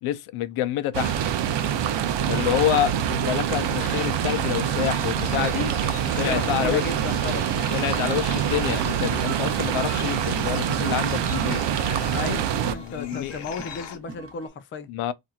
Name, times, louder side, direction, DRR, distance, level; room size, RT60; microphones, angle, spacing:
voice 1, 0.0-1.2 2.3-5.7 6.2-6.8 7.7-11.6 12.8-13.4 14.9-15.1, left 13 dB, 80° left, 0.6 m, -27 dB
sound 1, 0.9-12.7, right 9 dB, 60° right, 0.6 m, -25 dB
sound 2, 3.5-14.0, left 7 dB, 55° left, 0.9 m, -41 dB
voice 2, 6.1-7.5 12.1-14.9, left 5 dB, 25° left, 0.4 m, -34 dB
sound 3, 8.9-14.5, right 5 dB, 25° right, 0.8 m, -41 dB
4.3 x 2.6 x 2.3 m
cardioid pair, 155°, 49 cm